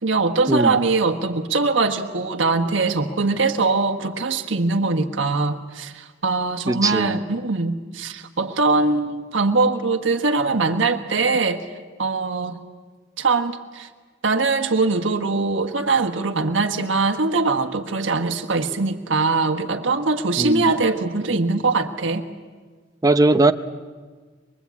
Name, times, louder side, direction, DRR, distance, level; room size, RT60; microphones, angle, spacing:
voice 1, 0.0-11.6 12.0-12.6 13.2-13.9 14.2-22.2, right 3 dB, 85° right, 1.5 m, -22 dB
voice 2, 6.7-7.2 20.4-20.6 23.0-23.5, right 2 dB, 20° right, 0.8 m, -18 dB
23.5 x 23.5 x 8.4 m
head